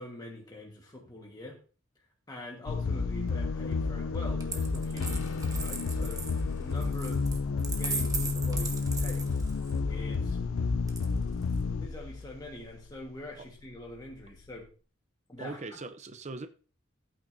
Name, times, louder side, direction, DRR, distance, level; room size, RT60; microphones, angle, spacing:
voice 1, 0.0-1.6 1.9-7.3 7.7-9.3 9.9-10.8 11.8-14.7 15.3-15.8, left 1 dB, 20° left, 1.4 m, -45 dB
sound 1, 2.7-12.9, left 4 dB, 85° left, 0.5 m, -31 dB
Coin (dropping), 4.4-9.8 10.9-11.6, right 4 dB, 15° right, 1.2 m, -38 dB
voice 2, 15.4-16.5, right 3 dB, 35° right, 0.6 m, -40 dB
14.5 x 8.8 x 2.7 m
head